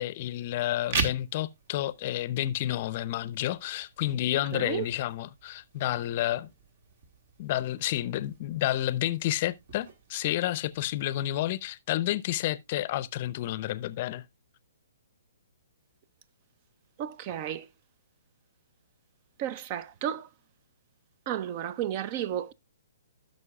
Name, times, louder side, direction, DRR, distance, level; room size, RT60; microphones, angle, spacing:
voice 1, 0.0-6.5 7.4-14.2, left 14 dB, 40° left, 0.6 m, -30 dB
sound 1, 0.7-11.7, right 4 dB, 55° right, 1.7 m, -41 dB
voice 2, 4.5-4.9 17.0-17.7 19.4-20.3 21.3-22.5, right 10 dB, 35° right, 0.6 m, -32 dB
15.5 x 6.4 x 2.3 m
hypercardioid pair, 130°, 0 cm